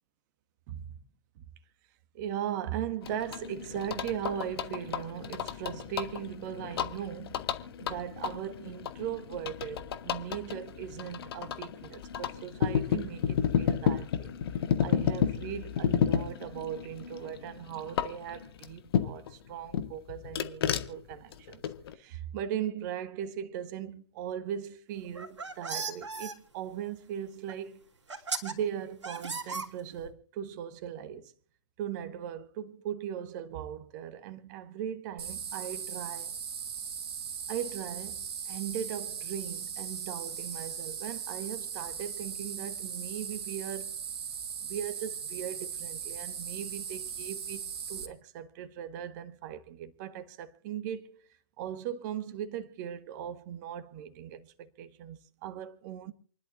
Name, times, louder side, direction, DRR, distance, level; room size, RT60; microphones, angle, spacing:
voice 1, 0.7-1.0 1.4-1.5 2.1-7.4 7.8-14.3 14.8-21.7 21.9-27.9 28.4-31.3 31.8-36.4 37.5-44.0 44.6-51.3 51.6-56.1, right 9 dB, 40° right, 1.4 m, -38 dB
sound 1, 3.0-19.3 19.7-21.9, left 8 dB, 55° left, 1.4 m, -32 dB
sound 2, 25.0-26.3 27.5-27.6 28.1-28.5 29.0-30.1, right 4 dB, 75° right, 3.1 m, -36 dB
sound 3, 35.2-48.1, right 7 dB, 55° right, 2.8 m, -38 dB
28.5 x 11.5 x 2.6 m
figure-of-eight pair, 120°, 15 cm